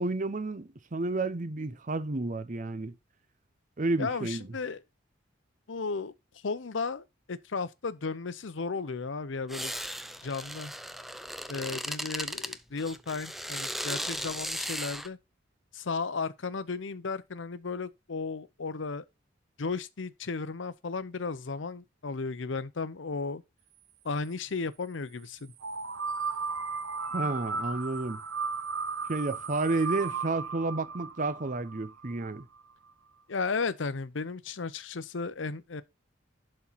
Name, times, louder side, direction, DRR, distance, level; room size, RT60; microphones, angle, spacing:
voice 1, 0.0-2.9 3.8-4.5 27.1-28.2 29.1-32.5, right 2 dB, 40° right, 0.7 m, -31 dB
voice 2, 4.0-4.8 5.7-6.1 6.4-9.8 10.2-10.7 11.5-15.2 15.7-19.0 19.6-23.4 24.0-25.5 33.3-35.8, left 4 dB, 75° left, 0.7 m, -34 dB
sound 1, 9.5-15.1, equal, ahead, 0.5 m, -36 dB
sound 2, 25.6-32.4, right 4 dB, 80° right, 0.8 m, -35 dB
11.5 x 4.4 x 4.1 m
head